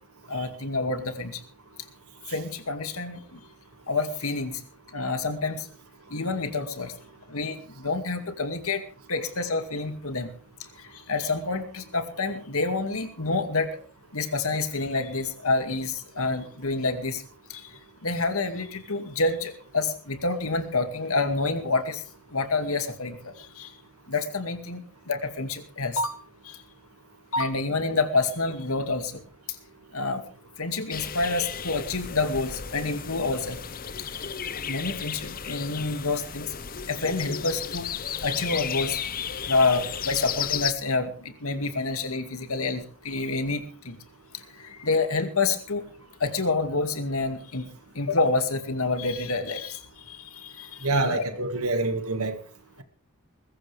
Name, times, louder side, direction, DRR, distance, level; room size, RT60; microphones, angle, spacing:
voice 1, 0.3-1.4 2.3-3.4 3.9-4.6 4.9-5.7 6.1-6.9 7.3-10.3 10.8-13.8 14.1-17.2 17.5-22.0 22.3-23.7 24.1-26.6 27.3-29.2 29.5-29.6 29.9-30.2 30.6-33.6 34.7-36.6 36.9-37.9 38.2-39.0 39.5-44.0 44.3-45.8 46.2-47.7 47.9-51.2, left 3 dB, 75° left, 2.3 m, -28 dB
sound 1, 30.9-40.7, left 8 dB, 40° left, 0.9 m, -34 dB
voice 2, 50.8-52.4, right 2 dB, 75° right, 2.0 m, -26 dB
21.5 x 15.0 x 3.4 m
head